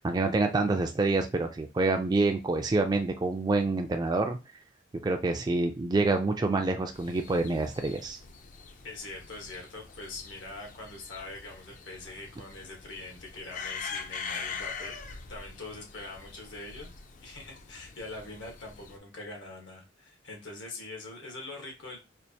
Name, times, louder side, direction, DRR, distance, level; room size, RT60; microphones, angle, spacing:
voice 1, 0.0-4.4 5.0-8.2, right 3 dB, 20° right, 4 dB, 0.3 m, -27 dB
sound 1, 6.9-19.0, left 5 dB, 45° left, 0.4 m, -43 dB
voice 2, 8.8-16.9 17.2-22.0, left 2 dB, 80° left, 0 dB, 1.2 m, -43 dB
4.4 x 2.4 x 2.7 m, 0.27 s
head